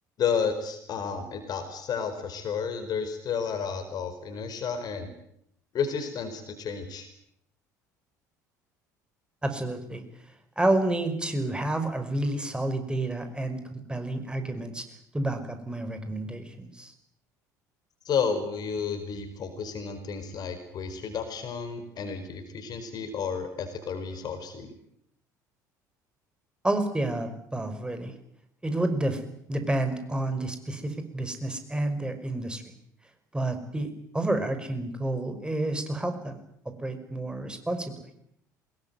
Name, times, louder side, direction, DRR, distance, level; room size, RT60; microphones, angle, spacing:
voice 1, 0.2-5.1 5.7-7.1 18.0-24.7, left 6 dB, 45° left, 8 dB, 4.7 m, -31 dB
voice 2, 9.4-10.0 10.6-14.8 15.1-16.9 26.6-28.1 28.6-29.2 29.5-32.6 33.3-36.3 36.8-38.1, right 1 dB, 10° right, 8 dB, 5.3 m, -29 dB
24.0 x 21.5 x 9.4 m, 0.73 s
figure-of-eight pair, 60°, 10 cm